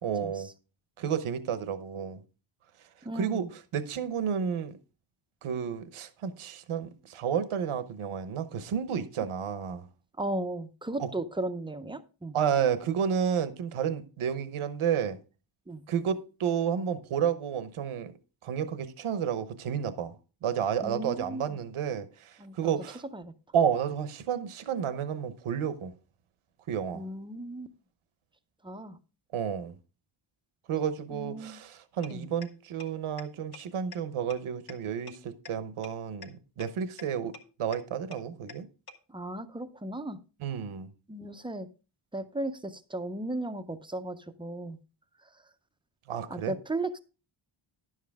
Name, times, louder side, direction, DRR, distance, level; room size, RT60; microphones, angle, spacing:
voice 1, 0.0-0.5 1.0-2.2 3.1-4.8 5.4-9.9 11.0-11.1 12.3-15.2 15.9-18.1 18.4-20.1 20.4-23.0 23.5-25.9 26.7-27.1 29.3-29.8 30.7-37.3 37.6-38.7 40.4-40.9 46.1-46.6, right 8 dB, 75° right, 0.9 m, -31 dB
voice 2, 3.0-3.5 10.2-12.4 15.7-15.8 20.8-21.6 22.4-22.7 23.1-23.3 26.9-27.7 28.6-29.0 31.1-31.6 32.1-32.3 39.1-40.2 41.1-41.7 42.1-44.8 46.3-47.0, right 2 dB, 10° right, 0.5 m, -36 dB
sound 1, 32.0-32.1 32.4-32.5 32.8-32.9 33.2-33.3 33.5-33.6 33.9-34.0 34.3-34.4 34.7-34.8 35.1-35.2 35.4-35.5 35.8-35.9 36.2-36.3 36.6-36.7 37.0-37.1 37.3-37.4 37.7-37.8 38.1-38.2 38.5-38.6 38.9-39.0, left 4 dB, 45° left, 1.1 m, -43 dB
11.0 x 7.5 x 3.5 m
wide cardioid pair, 175°, 50 cm